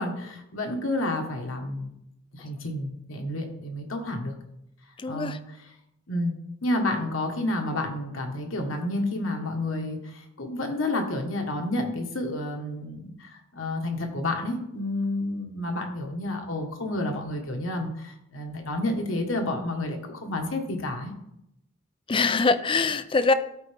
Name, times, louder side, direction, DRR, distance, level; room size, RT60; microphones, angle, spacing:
voice 1, 0.0-1.9 2.3-4.3 5.1-5.6 6.1-6.3 6.6-21.1, left 1 dB, 70° left, 2 dB, 1.4 m, -30 dB
voice 2, 5.0-5.4 22.1-23.3, left 4 dB, 25° left, 12 dB, 0.4 m, -23 dB
13.5 x 4.5 x 3.4 m, 0.82 s
head